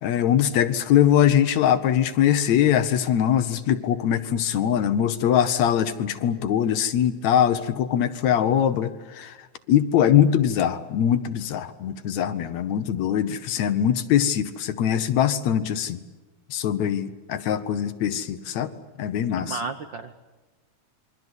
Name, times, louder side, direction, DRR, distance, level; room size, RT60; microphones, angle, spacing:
voice 1, 0.0-9.3 9.7-16.0 16.5-18.7 19.0-19.6, left 10 dB, 70° left, 11 dB, 2.0 m, -22 dB
voice 2, 19.3-20.2, right 4 dB, 80° right, 8 dB, 1.0 m, -33 dB
28.0 x 23.0 x 8.1 m, 1.2 s
omnidirectional pair, 3.7 m